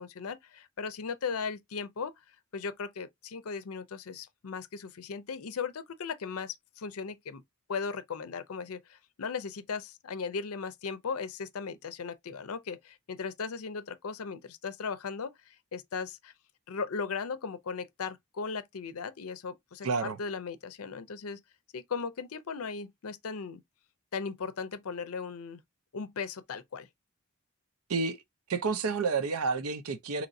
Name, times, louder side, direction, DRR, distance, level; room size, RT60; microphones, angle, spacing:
voice 1, 0.0-2.1 2.5-7.4 7.7-16.3 16.7-21.4 21.7-23.6 24.1-25.6 25.9-26.9, left 5 dB, 75° left, 0.5 m, -37 dB
voice 2, 19.8-20.2 27.9-28.2 28.5-30.3, right 4 dB, 75° right, 0.6 m, -30 dB
4.0 x 2.9 x 2.6 m
head